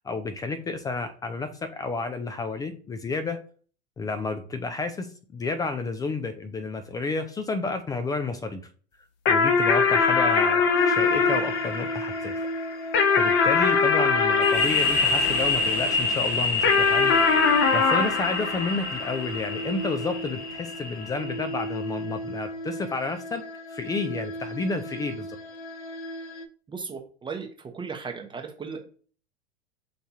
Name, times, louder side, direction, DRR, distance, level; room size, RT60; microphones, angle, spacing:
voice 1, 0.0-3.4 4.0-5.1 5.3-8.6 9.3-12.3 13.2-17.1 17.7-23.4 23.7-25.3, left 3 dB, 10° left, 8 dB, 0.3 m, -31 dB
sound 1, 9.3-16.0 16.6-19.4, left 5 dB, 35° left, 0.7 m, -22 dB
sound 2, 10.8-26.5, equal, 80° left, 0.6 m, -36 dB
sound 3, 14.4-21.9, left 3 dB, 55° left, 1.6 m, -28 dB
voice 2, 26.7-28.9, right 5 dB, 15° right, 4 dB, 0.7 m, -36 dB
5.6 x 3.4 x 2.8 m, 0.43 s
hypercardioid pair, 95°, 34 cm